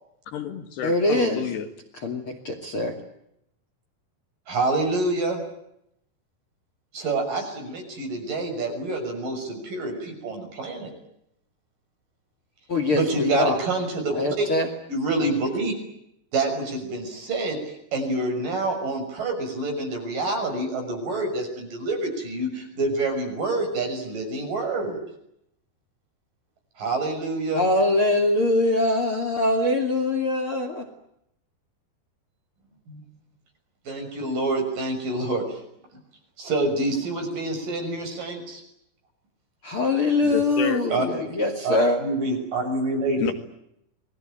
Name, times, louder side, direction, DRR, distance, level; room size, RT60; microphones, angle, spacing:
voice 1, 0.3-1.7 40.2-40.8 43.2-43.3, left 9 dB, 70° left, 4.0 m, -29 dB
voice 2, 0.8-1.4 2.0-3.0 12.7-13.6 14.1-14.7 27.5-30.8 39.6-42.0, left 2 dB, 35° left, 2.8 m, -23 dB
voice 3, 4.5-5.4 6.9-10.9 12.9-14.5 14.9-15.7 16.3-25.0 26.8-27.6 32.9-33.0 33.9-35.6 36.4-38.6 40.9-41.1 41.6-43.3, right 2 dB, 50° right, 7.7 m, -27 dB
29.0 x 21.5 x 9.0 m
omnidirectional pair, 5.1 m